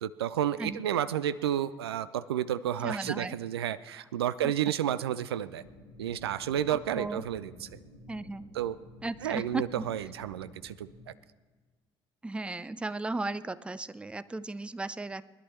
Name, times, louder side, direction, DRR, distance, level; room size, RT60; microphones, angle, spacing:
voice 1, 0.0-5.6 6.0-7.8 8.5-8.7 9.2-11.1, right 10 dB, 75° right, 15 dB, 0.4 m, -31 dB
voice 2, 2.8-3.4 4.4-4.5 6.7-7.2 8.1-8.5 9.0-9.9 12.2-15.2, right 2 dB, 10° right, 16 dB, 0.5 m, -36 dB
sound 1, 5.5-11.0, left 1 dB, 90° right, 2.1 m, -52 dB
20.0 x 11.0 x 4.2 m, 1.4 s
figure-of-eight pair, 55°, 13 cm